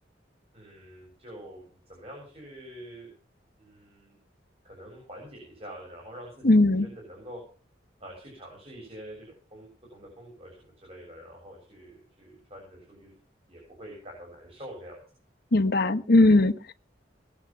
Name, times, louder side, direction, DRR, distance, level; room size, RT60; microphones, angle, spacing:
voice 1, 0.5-3.1 3.6-4.2 4.6-6.5 6.8-7.4 8.0-13.1 13.5-15.0, equal, 35° right, 0 dB, 7.1 m, -46 dB
voice 2, 6.4-6.9 15.5-16.7, left 2 dB, 60° left, 11 dB, 1.1 m, -19 dB
21.5 x 7.4 x 6.0 m, 0.41 s
head